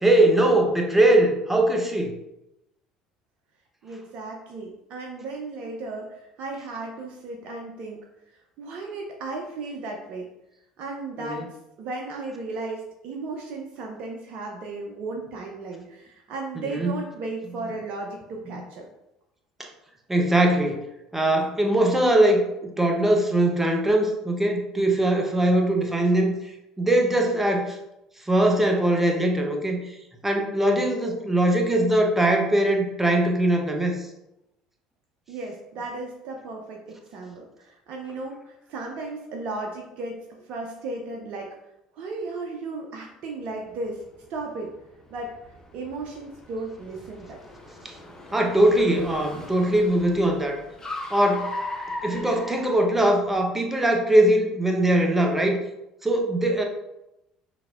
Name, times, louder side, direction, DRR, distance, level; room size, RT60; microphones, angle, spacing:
voice 1, 0.0-2.1 11.2-11.4 16.6-16.9 20.1-20.9 21.1-27.8 28.3-30.0 30.2-34.0 47.8-47.9 48.3-50.6 51.1-51.5 52.0-55.6 56.0-56.6, right 1 dB, 10° right, 2 dB, 0.8 m, -21 dB
voice 2, 3.8-8.0 8.3-10.3 10.8-11.5 11.8-18.9 35.3-41.5 41.9-44.0 44.3-44.7 45.1-45.3 45.7-47.4, right 3 dB, 55° right, 0 dB, 0.5 m, -35 dB
Car, 43.6-53.4, left 2 dB, 20° left, 0.8 m, -39 dB
5.8 x 2.7 x 2.4 m, 0.89 s
figure-of-eight pair, 60°, 3 cm